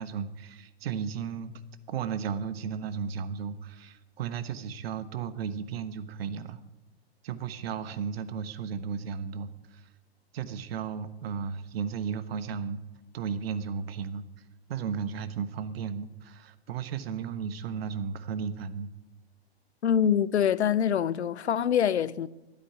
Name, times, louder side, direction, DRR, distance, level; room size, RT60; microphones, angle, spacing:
voice 1, 0.0-1.6 1.9-6.6 7.2-9.8 10.3-12.8 13.1-14.2 14.7-18.9, right 6 dB, 65° right, 1.2 m, -34 dB
voice 2, 19.8-22.3, left 8 dB, 85° left, 0.7 m, -25 dB
12.5 x 9.6 x 9.9 m
hypercardioid pair, 115°, 32 cm